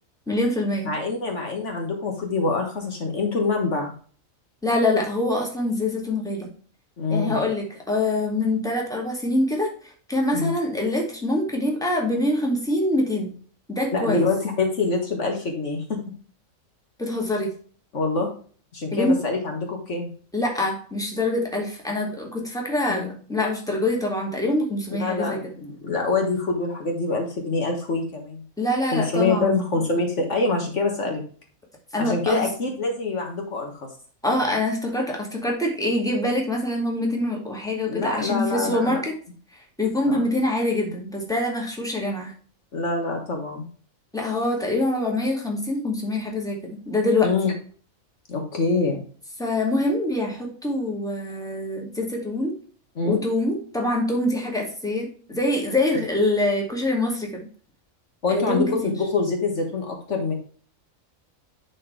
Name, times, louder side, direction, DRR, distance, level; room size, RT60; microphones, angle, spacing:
voice 1, 0.3-0.9 4.6-6.5 7.1-13.3 13.7-14.2 17.0-17.5 18.9-19.2 20.3-25.4 28.6-29.6 31.9-32.5 34.2-39.2 39.8-42.3 44.1-47.3 49.4-52.5 53.1-57.3 58.3-58.9, left 1 dB, 5° left, -1 dB, 2.3 m, -25 dB
voice 2, 0.9-3.9 7.0-7.4 10.3-10.5 13.9-16.0 17.9-18.3 18.7-20.1 22.9-23.1 25.0-28.4 28.9-31.2 32.0-33.9 37.8-39.0 40.0-40.2 42.7-43.7 47.2-47.5 48.3-49.0 53.0-53.2 58.2-60.3, left 3 dB, 60° left, 2 dB, 1.7 m, -25 dB
11.0 x 4.4 x 3.3 m, 0.43 s
omnidirectional pair, 1.4 m